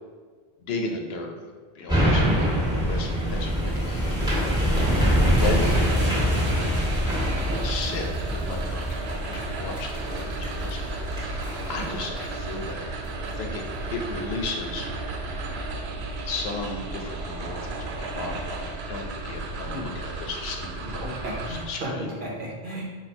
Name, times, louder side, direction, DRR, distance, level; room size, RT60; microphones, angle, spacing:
voice 1, 0.6-1.5 1.7-2.5 2.9-4.7 5.0-6.7 7.0-7.3 7.6-13.6 13.9-14.9 16.3-22.1, left 3 dB, 80° left, 2 dB, 0.9 m, -35 dB
sound 1, 1.9-13.3 13.8-13.9, equal, 5° right, 1.3 m, -25 dB
voice 2, 5.0-5.4 19.7-19.9 20.8-22.8, equal, 55° right, -3 dB, 1.0 m, -34 dB
sound 2, 5.3-21.6, right 2 dB, 90° right, 0.8 m, -34 dB
4.1 x 2.4 x 4.4 m, 1.5 s
omnidirectional pair, 1.0 m